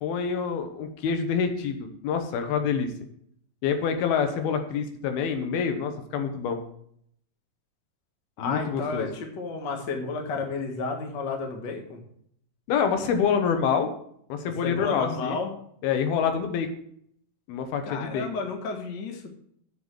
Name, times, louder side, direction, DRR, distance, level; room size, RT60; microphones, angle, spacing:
voice 1, 0.0-2.9 3.6-6.6 8.4-9.1 12.7-13.9 14.3-15.4 15.8-16.7 17.5-18.3, left 6 dB, 90° left, 7 dB, 3.1 m, -26 dB
voice 2, 8.4-12.0 14.4-15.5 17.8-19.3, left 4 dB, 45° left, 3 dB, 1.5 m, -32 dB
7.5 x 7.0 x 7.4 m, 0.68 s
omnidirectional pair, 4.2 m